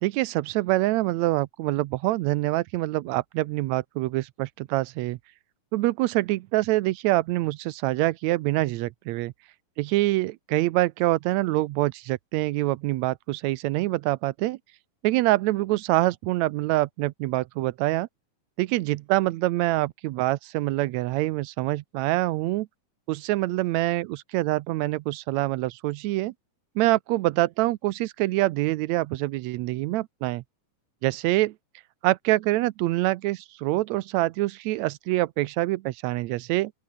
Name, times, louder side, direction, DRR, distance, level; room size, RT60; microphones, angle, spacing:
voice 1, 0.0-5.2 5.7-9.3 9.8-14.6 15.0-18.1 18.6-22.7 23.1-26.3 26.8-30.4 31.0-31.5 32.0-36.7, right 18 dB, 80° right, 1.6 m, -25 dB
open air
omnidirectional pair, 3.8 m